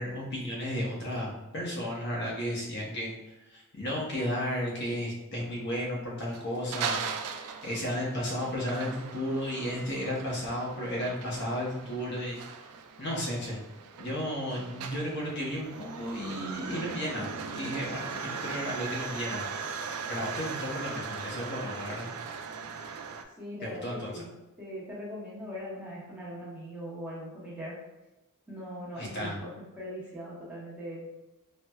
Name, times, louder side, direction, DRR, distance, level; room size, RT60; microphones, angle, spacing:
voice 1, 0.0-3.2 3.5-7.0 7.6-12.6 13.0-13.6 14.0-19.5 20.1-22.1 23.6-24.2 29.0-29.4, equal, 50° left, -4 dB, 0.7 m, -33 dB
sound 1, 6.3-23.2, right 6 dB, 75° right, 0.3 m, -39 dB
voice 2, 23.4-24.3 24.6-27.8 28.5-31.1, equal, 5° right, -8 dB, 0.9 m, -40 dB
4.3 x 2.1 x 2.2 m, 1.0 s
head